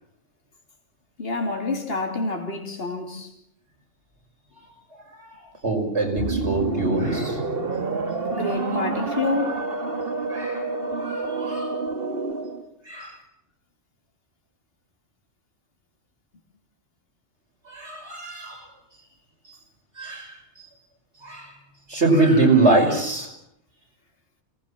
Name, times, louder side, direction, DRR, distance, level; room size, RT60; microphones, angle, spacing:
voice 1, 1.2-3.3 8.3-9.6, left 3 dB, 55° left, 3.2 m, -27 dB
voice 2, 5.6-7.4 8.5-8.8 10.3-10.7 11.0-11.8 12.9-13.2 17.6-18.6 20.0-20.4 21.2-21.5 21.9-23.3, right 2 dB, 70° right, 6.4 m, -23 dB
sound 1, 6.2-12.6, right 3 dB, 55° right, 2.2 m, -28 dB
26.5 x 19.5 x 7.6 m
omnidirectional pair, 1.2 m